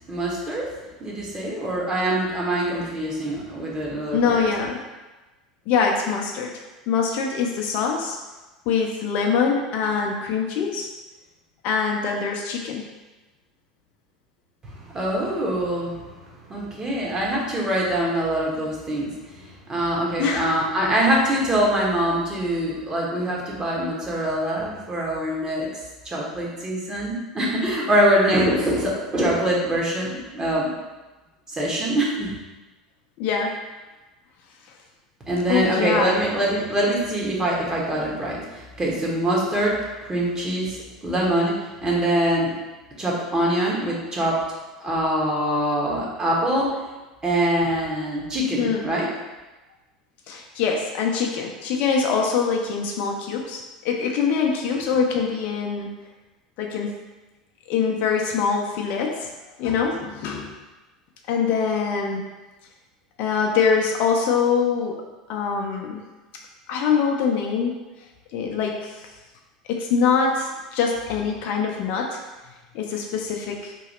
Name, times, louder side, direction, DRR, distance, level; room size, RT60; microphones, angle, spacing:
voice 1, 0.1-0.6 1.0-4.4 14.6-16.0 16.5-25.7 26.0-30.7 31.5-32.3 35.3-39.7 40.0-42.5 43.0-44.3 44.8-46.7 47.2-49.1, right 1 dB, 20° right, -4 dB, 1.1 m, -24 dB
voice 2, 4.1-4.8 5.7-6.5 6.9-8.2 8.7-10.9 11.6-12.9 20.2-20.4 33.2-33.6 35.5-36.2 48.6-48.8 50.3-55.9 56.6-56.9 57.7-59.3 59.6-60.6 61.3-62.2 63.2-65.0 65.3-66.0 66.7-67.8 68.3-68.9 69.7-72.2 72.7-73.7, left 6 dB, 45° left, 1 dB, 0.5 m, -23 dB
3.0 x 2.7 x 4.0 m, 1.2 s
figure-of-eight pair, 75°, 4 cm